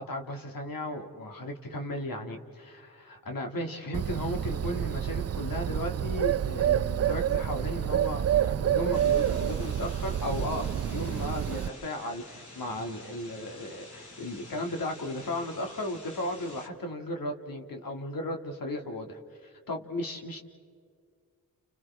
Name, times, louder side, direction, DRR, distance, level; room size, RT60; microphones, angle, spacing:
voice 1, 0.0-19.2 19.7-20.4, left 1 dB, 75° left, 3 dB, 2.6 m, -35 dB
Bird, 3.9-11.7, right 10 dB, 45° right, 0.5 m, -28 dB
sound 1, 8.9-16.7, left 2 dB, 55° left, 2.9 m, -49 dB
30.0 x 30.0 x 3.7 m, 2.1 s
cardioid pair, 50°, 35 cm